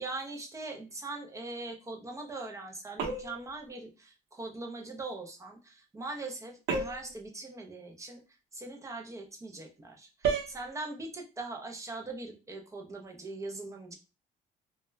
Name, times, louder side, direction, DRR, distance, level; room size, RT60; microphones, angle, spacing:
voice 1, 0.0-8.2 8.5-14.0, right 2 dB, 20° right, 3 dB, 0.6 m, -41 dB
sound 1, 3.0-3.5 6.7-7.2 10.2-10.6, right 5 dB, 75° right, 0.7 m, -31 dB
2.2 x 2.1 x 3.1 m, 0.32 s
cardioid pair, 110°, 17 cm